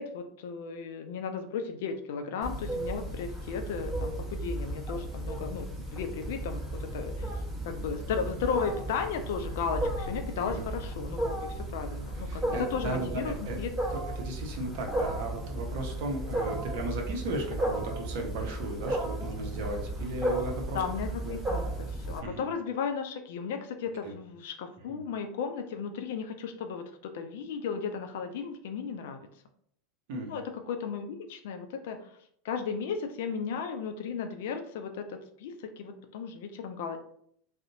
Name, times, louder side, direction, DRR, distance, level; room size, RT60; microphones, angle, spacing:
voice 1, 0.0-7.3 7.6-13.7 20.7-29.3 30.3-32.1 32.4-37.0, left 6 dB, 60° left, 6 dB, 0.3 m, -35 dB
Wild animals, 2.4-22.2, right 1 dB, 15° right, 0.9 m, -34 dB
voice 2, 12.3-13.6 14.2-20.8 21.2-21.4 22.2-22.5 24.0-24.1 24.9-25.0 30.1-30.3, right 2 dB, 60° right, 2 dB, 0.6 m, -35 dB
2.5 x 2.0 x 2.6 m, 0.67 s
figure-of-eight pair, 80°, 0 cm